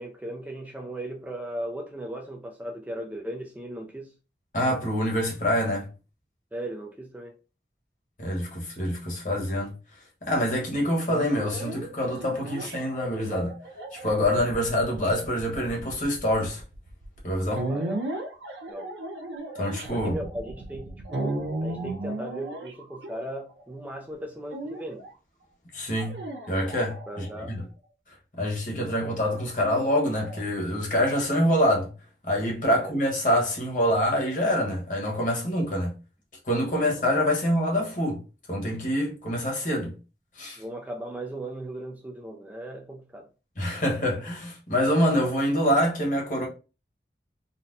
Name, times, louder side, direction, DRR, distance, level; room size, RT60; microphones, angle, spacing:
voice 1, 0.0-4.1 6.5-7.3 17.7-18.0 18.7-18.9 19.9-25.0 27.1-27.6 32.7-32.9 40.6-43.3, right 1 dB, 10° right, 0.3 m, -37 dB
voice 2, 4.5-5.9 8.2-9.7 10.2-13.5 13.9-16.6 17.2-17.7 19.6-20.2 25.7-26.2 26.5-27.6 28.4-31.9 32.2-35.9 36.5-38.2 38.5-39.9 40.4-40.6 43.6-46.5, equal, 45° left, 1.1 m, -26 dB
sound 1, 11.1-23.7 24.5-25.1 26.0-27.5 29.0-30.4, right 2 dB, 85° right, 0.6 m, -36 dB
4.0 x 2.1 x 2.5 m
head